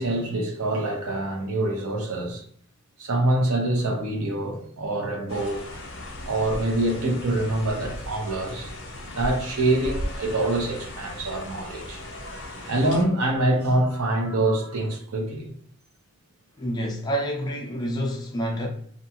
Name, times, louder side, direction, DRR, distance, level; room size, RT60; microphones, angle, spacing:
voice 1, 0.0-2.4 3.0-5.7 6.2-8.7 9.0-12.0 12.7-15.5, right 1 dB, 85° right, 0.7 m, -25 dB
sound 1, 5.3-13.0, left 1 dB, 55° left, 0.7 m, -37 dB
voice 2, 16.6-18.7, equal, 20° left, 0.4 m, -28 dB
2.5 x 2.3 x 2.8 m
head